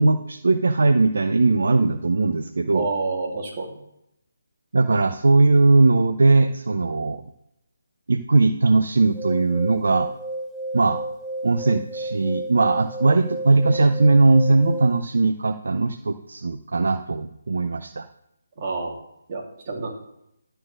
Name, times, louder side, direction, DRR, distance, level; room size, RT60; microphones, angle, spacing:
voice 1, 0.0-2.9 4.7-7.2 8.1-10.1 10.7-11.0 11.4-18.0, right 3 dB, 65° right, 11 dB, 0.5 m, -19 dB
voice 2, 2.7-3.8 18.6-19.0 19.3-19.9, right 3 dB, 35° right, -1 dB, 2.4 m, -28 dB
sound 1, 9.0-15.0, right 1 dB, 5° right, 0.6 m, -32 dB
11.5 x 4.5 x 6.4 m, 0.81 s
figure-of-eight pair, 145°, 0 cm